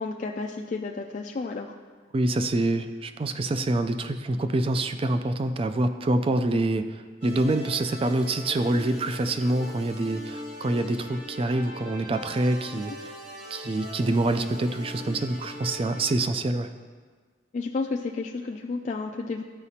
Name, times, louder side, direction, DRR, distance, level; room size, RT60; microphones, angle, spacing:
voice 1, 0.0-1.7 17.5-19.4, left 3 dB, 45° left, 1 dB, 0.3 m, -31 dB
voice 2, 2.1-12.9 13.5-16.7, right 2 dB, 30° right, 9 dB, 0.4 m, -26 dB
sound 1, 7.2-16.2, left 1 dB, 50° right, 1.3 m, -41 dB
13.0 x 4.9 x 2.8 m, 1.5 s
head